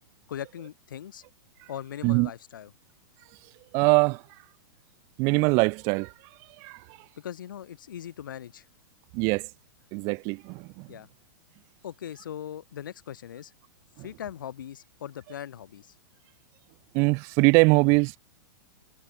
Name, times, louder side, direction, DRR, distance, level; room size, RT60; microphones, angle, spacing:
voice 1, 0.3-1.2 1.7-2.7 7.2-8.6 10.9-11.1 11.8-13.5 14.0-15.9, left 10 dB, 65° left, 6.7 m, -40 dB
voice 2, 3.7-4.2 5.2-6.1 6.6-6.8 9.1-9.5 9.9-10.9 16.9-18.2, right 30 dB, 25° right, 1.2 m, -22 dB
supercardioid pair, 180°, 11 cm